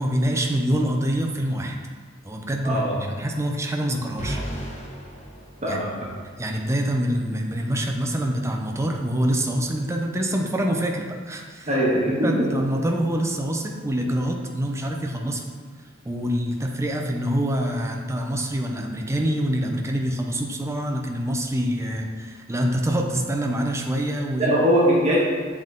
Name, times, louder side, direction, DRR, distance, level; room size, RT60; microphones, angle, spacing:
voice 1, 0.0-1.8 2.2-2.8 3.2-4.4 5.7-5.8 6.4-11.7 12.2-15.4 16.0-24.6, equal, 15° right, 1 dB, 0.6 m, -25 dB
voice 2, 2.6-3.0 5.6-5.9 11.7-12.5 24.4-25.2, equal, 35° right, -5 dB, 1.3 m, -21 dB
sound 1, 4.2-6.3, equal, 35° left, 1.1 m, -35 dB
7.5 x 3.7 x 3.7 m, 1.5 s
head